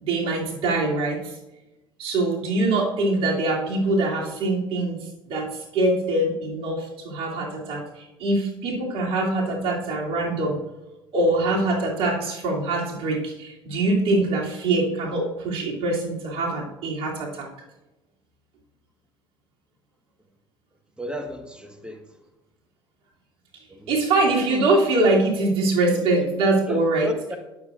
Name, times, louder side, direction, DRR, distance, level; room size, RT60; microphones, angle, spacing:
voice 1, 0.0-1.3 2.0-5.0 5.3-5.5 5.7-10.6 11.1-17.5 23.9-27.1, right 2 dB, 50° right, -2 dB, 2.9 m, -23 dB
voice 2, 21.0-22.0 23.7-23.9 24.3-24.5 24.7-24.8 25.9-26.3 26.7-27.4, left 1 dB, 5° right, 6 dB, 1.5 m, -34 dB
18.0 x 7.4 x 2.5 m, 1.0 s
figure-of-eight pair, 60°, 12 cm